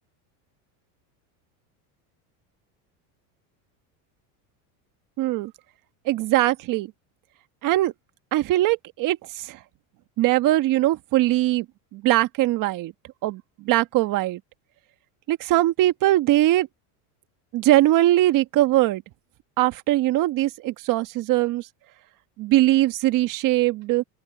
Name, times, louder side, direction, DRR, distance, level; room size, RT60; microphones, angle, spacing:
voice 1, 5.2-5.5 6.0-6.9 7.6-7.9 8.3-9.2 9.5-9.6 10.2-11.6 11.9-12.9 13.2-14.4 15.3-16.7 17.5-19.0 19.6-21.6 22.4-24.0, right 16 dB, 45° right, 1.6 m, -21 dB
open air
cardioid pair, 150°, 44 cm